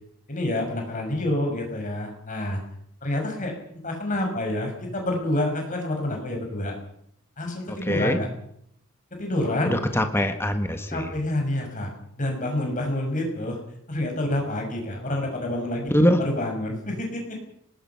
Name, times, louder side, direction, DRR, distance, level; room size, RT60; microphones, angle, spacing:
voice 1, 0.3-2.6 3.0-3.5 3.8-6.8 7.4-8.3 9.1-9.8 10.9-11.9 12.2-13.6 13.9-17.4, left 1 dB, 35° left, 2 dB, 6.2 m, -28 dB
voice 2, 7.7-8.2 9.6-11.1 15.9-16.2, equal, 10° left, 7 dB, 1.6 m, -23 dB
24.0 x 20.0 x 5.9 m, 0.72 s
head